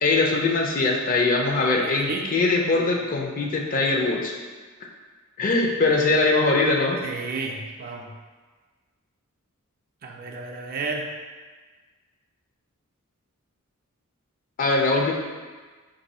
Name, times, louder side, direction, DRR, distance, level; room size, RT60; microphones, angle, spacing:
voice 1, 0.0-4.3 5.4-7.0 14.6-15.1, left 3 dB, 40° left, 0 dB, 0.5 m, -22 dB
voice 2, 1.7-2.3 7.0-8.1 10.0-11.1, right 3 dB, 45° right, 2 dB, 0.4 m, -32 dB
3.0 x 2.6 x 4.1 m, 1.4 s
head